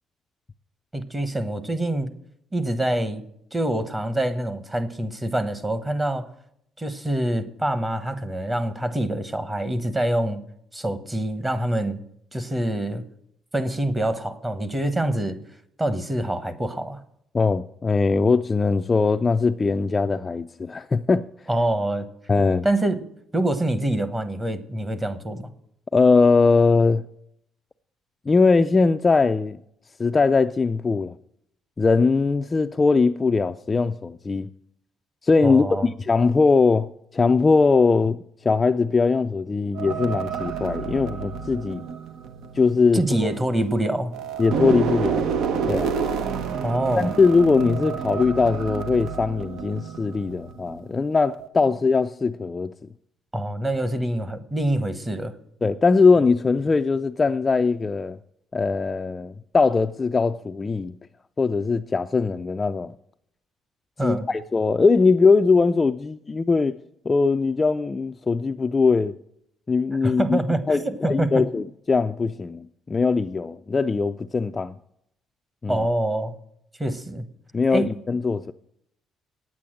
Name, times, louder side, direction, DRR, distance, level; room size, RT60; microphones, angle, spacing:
voice 1, 0.9-2.1 2.5-3.2 3.5-6.3 6.8-10.4 10.7-12.0 12.3-13.0 13.5-15.4 15.8-17.0 21.5-22.1 22.6-23.1 23.3-25.5 35.4-35.9 42.9-44.1 46.6-47.1 53.3-55.3 64.0-64.3 70.0-70.8 71.0-71.3 75.7-76.3 76.8-77.3 77.7-77.9, right 1 dB, 15° right, 1.1 m, -25 dB
voice 2, 17.3-21.3 22.3-22.7 25.9-27.0 28.3-29.6 30.0-31.2 31.8-34.5 35.2-41.8 42.5-43.3 44.4-45.2 45.7-46.0 47.0-52.7 55.6-58.2 58.5-61.0 61.4-62.9 64.0-66.8 67.1-69.1 69.7-70.4 70.7-74.8 75.6-75.8 77.5-78.5, left 4 dB, 20° left, 0.3 m, -21 dB
sound 1, 39.7-43.8 44.1-50.8 51.2-51.5, right 6 dB, 75° right, 0.9 m, -29 dB
9.3 x 8.5 x 7.6 m
cardioid pair, 135°, 0 cm